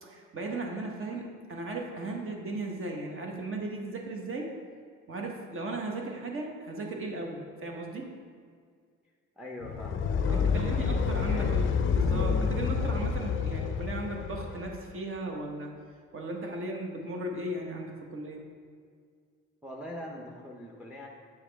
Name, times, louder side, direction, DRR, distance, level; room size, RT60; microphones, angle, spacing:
voice 1, 0.0-4.6 5.1-8.1 10.3-15.7 16.1-18.4, right 2 dB, 45° right, 1 dB, 1.1 m, -36 dB
voice 2, 9.4-11.6 19.6-21.1, equal, 5° right, 0 dB, 0.6 m, -43 dB
sound 1, 9.6-14.8, left 6 dB, 40° left, 0.4 m, -28 dB
7.1 x 4.8 x 3.4 m, 2.1 s
cardioid pair, 90°, 30 cm